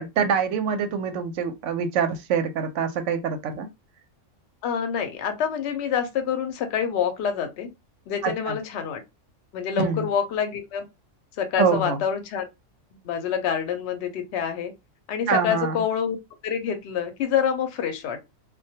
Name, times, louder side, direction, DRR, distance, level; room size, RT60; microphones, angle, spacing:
voice 1, 0.0-3.7 8.2-8.6 9.8-10.1 11.6-12.0 15.3-15.8, right 6 dB, 70° right, 0.8 m, -25 dB
voice 2, 4.6-7.7 8.1-9.0 9.5-10.9 11.4-12.4 13.0-14.7 15.1-16.2 16.4-18.3, left 8 dB, 65° left, 0.7 m, -27 dB
2.2 x 2.1 x 2.7 m
omnidirectional pair, 1.4 m